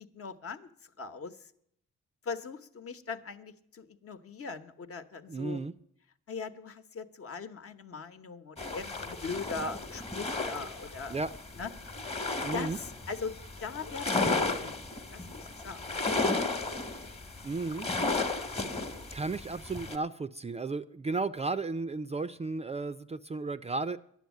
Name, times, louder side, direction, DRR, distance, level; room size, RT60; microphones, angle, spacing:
voice 1, 0.1-0.7 1.0-1.3 2.2-5.6 6.3-11.2 11.6-11.7 12.5-13.3 13.6-14.3 14.6-14.7 15.1-16.5, left 4 dB, 50° left, 8 dB, 1.1 m, -40 dB
voice 2, 5.3-5.7 11.1-11.3 12.4-12.8 17.4-17.9 18.3-18.5 19.1-24.0, right 3 dB, 20° right, 12 dB, 0.4 m, -34 dB
sound 1, 8.6-20.0, left 3 dB, 20° left, 1.2 m, -34 dB
11.0 x 7.2 x 9.4 m, 0.70 s
cardioid pair, 90°, 30 cm